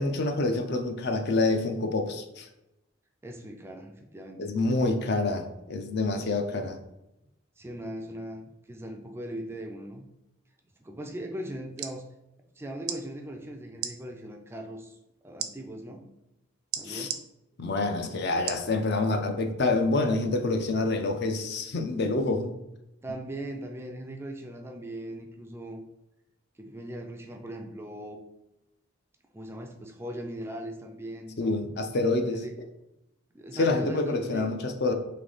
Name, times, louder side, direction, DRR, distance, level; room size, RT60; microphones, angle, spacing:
voice 1, 0.0-2.5 4.4-6.8 16.8-17.1 17.6-22.5 31.4-32.4 33.5-34.9, left 2 dB, 50° left, 6 dB, 0.5 m, -27 dB
voice 2, 3.2-4.5 7.6-10.0 10.8-12.1 12.6-15.0 15.2-16.1 16.7-17.2 23.0-25.8 26.6-28.2 29.3-31.6 32.2-32.6 33.3-34.5, right 1 dB, 10° right, 3 dB, 0.3 m, -39 dB
sound 1, 11.5-12.0 12.8-13.0 13.7-13.9 15.4-15.5 16.7-17.2 18.5-18.7 19.3-19.4, right 9 dB, 85° right, 0.4 m, -33 dB
3.4 x 3.2 x 3.8 m, 0.89 s
head